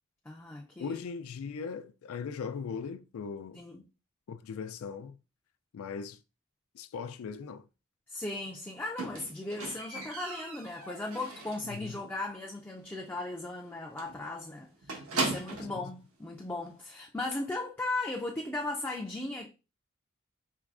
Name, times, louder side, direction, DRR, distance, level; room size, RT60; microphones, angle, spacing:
voice 1, 0.3-1.0 3.5-3.8 8.1-19.5, left 2 dB, 10° left, 0.4 m, -37 dB
voice 2, 0.8-3.6 4.3-5.2 5.7-6.2 6.7-7.7 11.6-12.0 15.8-15.9, left 6 dB, 85° left, 0.4 m, -39 dB
Squeak, 9.0-11.8 12.1-12.5 12.8-12.9 13.2-13.3 13.6-13.7 14.0-15.8 16.7-16.8, right 3 dB, 85° right, 1.0 m, -37 dB
4.6 x 3.1 x 2.4 m
head